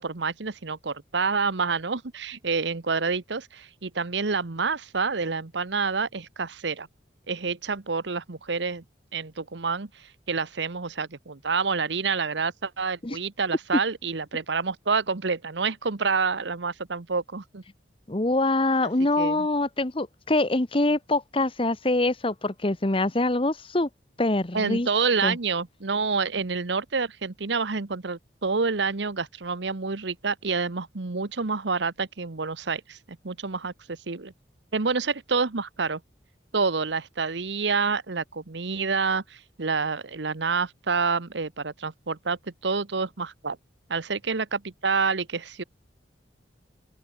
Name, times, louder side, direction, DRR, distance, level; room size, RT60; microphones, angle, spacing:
voice 1, 0.0-6.9 7.3-8.8 9.1-17.6 18.8-18.9 19.2-19.5 24.5-34.3 34.7-36.0 36.5-43.6 43.9-45.6, right 4 dB, 75° right, 1.1 m, -28 dB
voice 2, 18.1-23.9 24.2-24.9 25.2-25.4, left 2 dB, 30° left, 1.1 m, -24 dB
open air
head